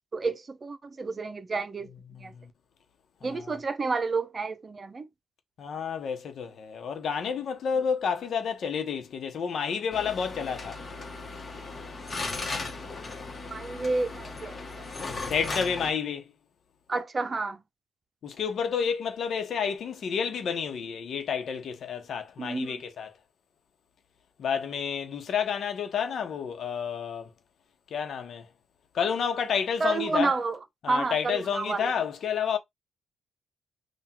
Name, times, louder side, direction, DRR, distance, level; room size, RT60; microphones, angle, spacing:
voice 1, 0.1-1.9 2.2-2.3 3.2-5.1 13.5-14.6 16.9-17.6 22.4-22.8 29.8-30.6 30.9-31.9, right 3 dB, 30° right, 0.8 m, -30 dB
voice 2, 2.1-2.5 3.2-3.6 5.6-10.8 15.3-16.2 18.2-23.1 24.4-27.3 27.9-28.4 28.9-30.3 30.8-32.6, left 7 dB, 60° left, 1.0 m, -30 dB
sound 1, 9.9-15.9, left 3 dB, 30° left, 1.4 m, -37 dB
3.6 x 2.5 x 4.4 m
cardioid pair, 90°, 0 cm